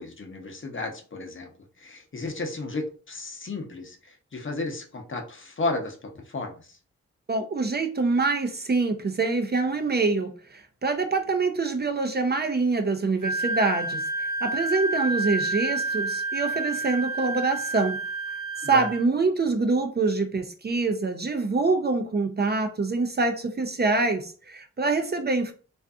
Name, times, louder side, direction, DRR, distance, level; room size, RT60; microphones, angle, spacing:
voice 1, 0.0-1.5 1.8-6.5 18.7-18.8, left 3 dB, 40° left, 0.7 m, -33 dB
voice 2, 7.3-18.0 18.6-25.5, right 3 dB, 35° right, 0.5 m, -25 dB
Wind instrument woodwind instrument, 13.2-19.0, right 2 dB, 75° right, 0.7 m, -29 dB
2.5 x 2.5 x 2.3 m
cardioid pair, 40°, 30 cm